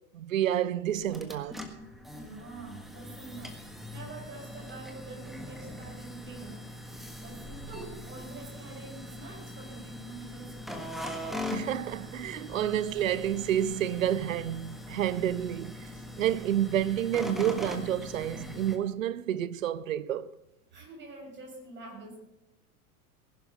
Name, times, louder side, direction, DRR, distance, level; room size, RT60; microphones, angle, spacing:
voice 1, 0.1-1.6 11.5-15.9 16.2-20.3, right 11 dB, 65° right, 0.6 m, -29 dB
sound 1, 1.0-18.8, left 1 dB, ahead, 1.5 m, -41 dB
voice 2, 2.1-3.6 3.9-6.6 7.2-10.9 20.7-22.2, right 2 dB, 25° right, 6.6 m, -46 dB
19.5 x 11.5 x 4.1 m
figure-of-eight pair, 90°, 43 cm